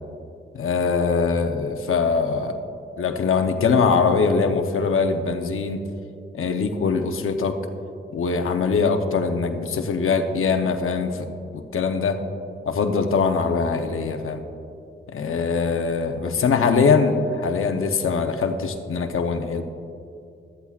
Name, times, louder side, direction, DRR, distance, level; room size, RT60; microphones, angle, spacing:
voice 1, 0.5-2.5 3.0-5.8 6.3-7.6 8.1-11.3 11.5-12.2 12.7-14.4 15.1-19.6, left 5 dB, 90° left, 5 dB, 0.8 m, -22 dB
14.0 x 13.0 x 2.4 m, 2.6 s
wide cardioid pair, 120°, 21 cm